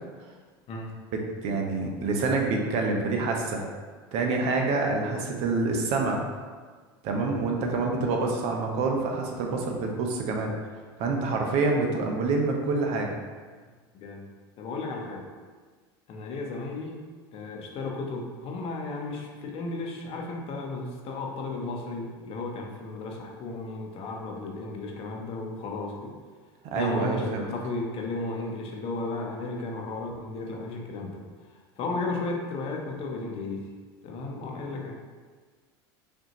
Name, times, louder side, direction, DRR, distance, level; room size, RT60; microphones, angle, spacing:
voice 1, 1.1-3.7 4.1-6.2 7.0-10.5 11.0-13.2 26.7-27.5, right 3 dB, 55° right, 1 dB, 0.8 m, -27 dB
voice 2, 14.6-15.2 16.1-17.0 17.3-26.1 26.7-31.2 31.8-33.6 34.0-34.9, left 3 dB, 45° left, 0 dB, 0.8 m, -34 dB
5.2 x 2.7 x 3.0 m, 1.5 s
hypercardioid pair, 95°, 13 cm